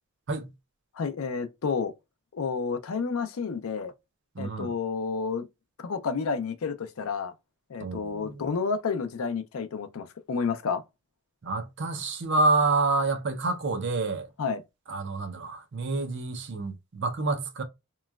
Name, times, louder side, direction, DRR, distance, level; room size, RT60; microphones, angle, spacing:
voice 1, 1.0-1.9 2.3-3.9 4.4-5.5 5.8-7.3 7.7-10.8 14.4-14.6, left 5 dB, 70° left, 0.4 m, -30 dB
voice 2, 4.3-4.7 7.8-8.5 11.4-14.3 14.9-17.6, right 3 dB, 55° right, 0.5 m, -28 dB
3.0 x 2.2 x 2.2 m
head